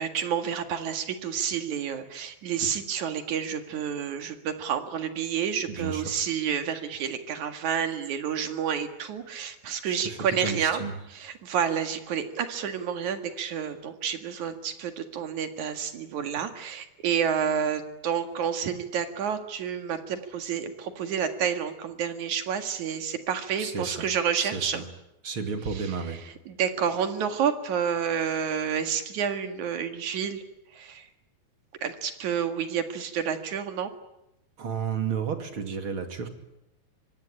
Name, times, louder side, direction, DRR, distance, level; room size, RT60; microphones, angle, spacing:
voice 1, 0.0-10.8 11.1-24.8 25.7-30.4 30.7-31.1 31.8-33.9, right 8 dB, 55° right, 8 dB, 2.7 m, -29 dB
voice 2, 5.7-6.2 9.8-10.9 23.6-24.1 24.4-24.8 25.2-26.2 34.6-36.3, right 6 dB, 35° right, 7 dB, 2.4 m, -32 dB
25.0 x 24.0 x 9.9 m, 0.86 s
omnidirectional pair, 5.2 m